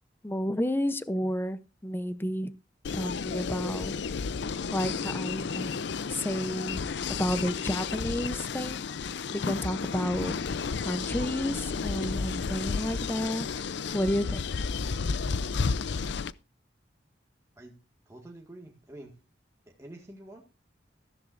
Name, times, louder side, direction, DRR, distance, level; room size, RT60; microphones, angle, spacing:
voice 1, 0.2-2.5 2.9-4.0 4.7-6.8 7.2-8.8 9.3-10.4 10.8-13.5 13.9-14.4, equal, 10° left, 13 dB, 0.7 m, -31 dB
sound 1, 2.8-16.3, left 5 dB, 65° left, 0.5 m, -32 dB
voice 2, 18.1-19.2 19.7-20.4, right 1 dB, 15° right, -1 dB, 1.8 m, -47 dB
14.5 x 13.0 x 2.6 m, 0.30 s
head